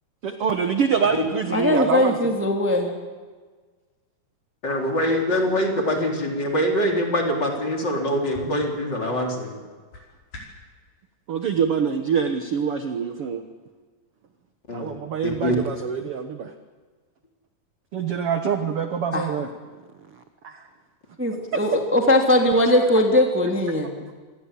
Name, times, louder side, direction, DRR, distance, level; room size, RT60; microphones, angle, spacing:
voice 1, 0.2-2.3 11.3-13.4 14.7-16.5 17.9-19.5 20.1-20.7 24.1-24.2, right 6 dB, 55° right, 7 dB, 1.7 m, -25 dB
voice 2, 1.5-2.9 19.1-19.2 21.2-23.9, left 1 dB, 5° right, 1 dB, 2.5 m, -20 dB
voice 3, 4.6-9.6 14.7-14.9 15.2-15.5, equal, 30° left, 1 dB, 4.5 m, -24 dB
sound 1, 8.3-10.7, equal, 85° left, 6.7 m, -43 dB
27.5 x 21.5 x 8.5 m, 1.4 s
omnidirectional pair, 3.9 m